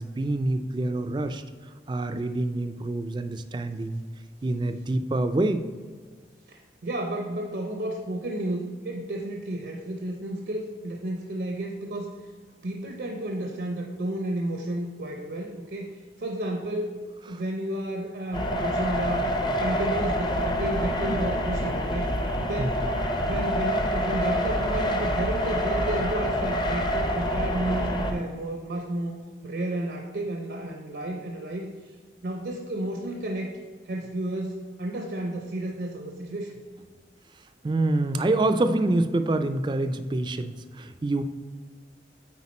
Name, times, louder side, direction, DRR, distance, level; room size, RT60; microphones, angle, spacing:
voice 1, 0.0-1.4 1.9-4.0 4.4-5.6 17.3-17.4 22.6-22.7 37.6-41.2, right 2 dB, 25° right, 9 dB, 0.3 m, -26 dB
voice 2, 6.5-12.2 12.6-17.0 17.3-19.3 19.6-22.1 22.4-22.8 23.2-29.2 29.4-31.9 32.2-33.5 33.8-36.6, right 1 dB, 70° right, 2 dB, 0.6 m, -32 dB
sound 1, 18.3-28.1, equal, 25° left, 0.6 m, -26 dB
8.4 x 4.5 x 4.2 m, 1.5 s
head